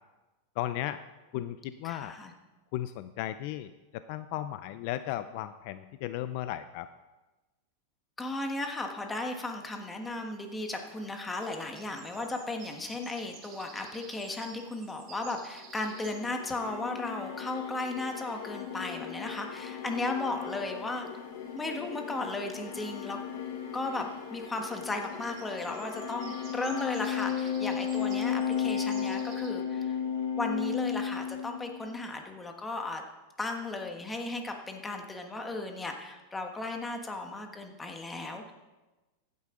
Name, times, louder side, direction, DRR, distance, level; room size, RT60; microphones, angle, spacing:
voice 1, 0.6-1.0 1.3-2.2 2.7-6.9, left 13 dB, 55° left, 12 dB, 0.4 m, -35 dB
voice 2, 1.8-2.3 8.2-21.1 21.5-23.2 23.7-29.9 30.4-33.0 33.4-38.5, left 2 dB, 10° left, 4 dB, 1.3 m, -35 dB
sound 1, 10.4-29.5, right 6 dB, 40° right, 1.8 m, -54 dB
sound 2, 15.7-32.0, left 8 dB, 70° left, 1.4 m, -35 dB
15.0 x 9.6 x 3.8 m, 1.1 s
supercardioid pair, 145°, 0 cm